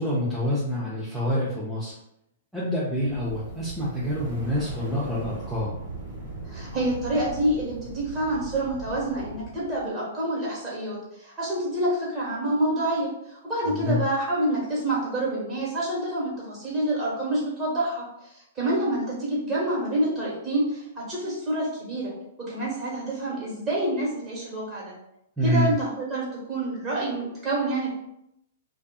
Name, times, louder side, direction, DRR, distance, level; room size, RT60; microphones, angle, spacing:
voice 1, 0.0-1.9 2.5-5.8 13.7-14.0 25.4-25.7, equal, 5° right, -9 dB, 0.6 m, -27 dB
sound 1, 2.9-9.9, right 3 dB, 45° right, 1.0 m, -39 dB
voice 2, 6.4-18.0 18.3-22.1 22.4-24.9 25.4-27.9, right 1 dB, 20° right, -6 dB, 1.4 m, -27 dB
2.5 x 2.4 x 2.3 m, 0.81 s
hypercardioid pair, 115°, 0 cm